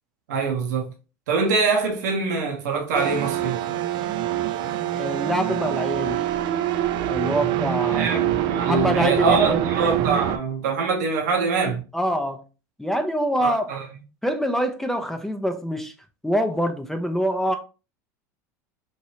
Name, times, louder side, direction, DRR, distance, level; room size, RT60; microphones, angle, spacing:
voice 1, 0.3-0.9 1.3-3.6 7.9-11.8 13.4-13.9, right 4 dB, 80° right, 0.7 m, -24 dB
sound 1, 2.9-10.4, right 11 dB, 55° right, 0.4 m, -25 dB
voice 2, 5.0-6.2 7.1-8.1 8.7-9.7 11.9-12.4 12.8-13.7 14.2-15.9 16.2-17.6, equal, 5° left, 0.5 m, -25 dB
3.1 x 2.6 x 2.8 m
hypercardioid pair, 100°, 9 cm